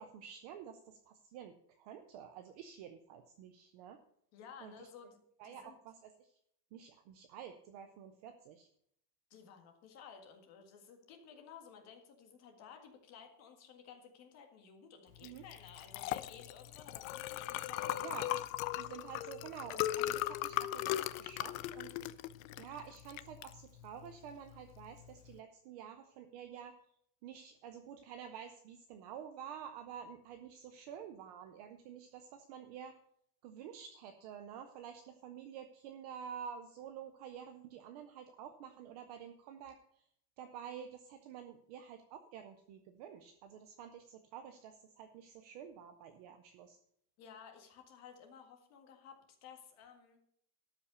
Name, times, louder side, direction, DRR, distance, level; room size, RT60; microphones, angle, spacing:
voice 1, 0.0-4.0 4.6-4.9 5.4-6.3 6.7-8.7 15.2-15.4 18.0-18.4 18.7-22.1 22.6-26.8 27.2-33.0 33.4-40.0 40.4-46.8, right 8 dB, 30° right, 7 dB, 0.4 m, -50 dB
voice 2, 4.3-5.8 9.3-18.1 47.2-50.3, left 7 dB, 35° left, 4 dB, 1.8 m, -55 dB
Liquid, 15.2-25.3, left 14 dB, 60° left, 0.6 m, -39 dB
12.5 x 5.7 x 6.7 m, 0.70 s
supercardioid pair, 175°, 47 cm